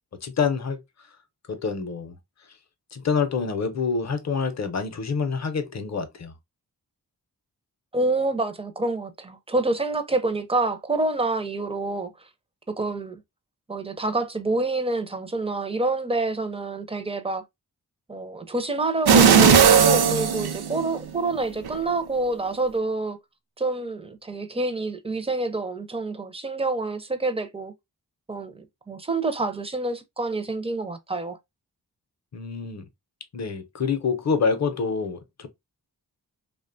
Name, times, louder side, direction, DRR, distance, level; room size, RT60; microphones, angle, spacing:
voice 1, 0.2-0.8 1.5-2.2 2.9-6.3 32.3-32.8 33.3-35.5, left 5 dB, 45° left, 0.6 m, -26 dB
voice 2, 7.9-12.1 12.8-13.2 13.7-17.4 18.1-23.2 23.6-27.7 28.3-31.4, right 2 dB, 15° right, 0.4 m, -27 dB
sound 1, 19.1-21.2 21.6-21.8, right 6 dB, 75° right, 0.6 m, -16 dB
2.8 x 2.2 x 2.4 m
wide cardioid pair, 70°, 38 cm